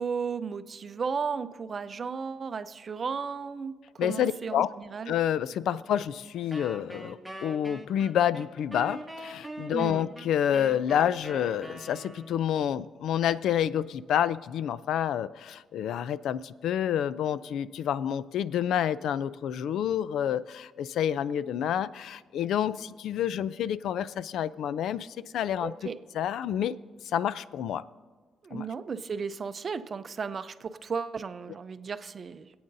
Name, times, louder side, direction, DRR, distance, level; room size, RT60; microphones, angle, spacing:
voice 1, 0.0-5.2 9.7-10.1 25.6-26.0 28.4-32.5, right 5 dB, 40° right, 11 dB, 0.5 m, -34 dB
voice 2, 4.0-4.7 5.1-25.7 26.1-26.8 27.1-27.8 28.5-28.7, left 10 dB, 85° left, 17 dB, 0.3 m, -28 dB
Wind instrument woodwind instrument, 6.5-12.5, right 1 dB, ahead, 1.1 m, -43 dB
25.5 x 8.6 x 2.6 m, 1.5 s
cardioid pair, 125°, 0 cm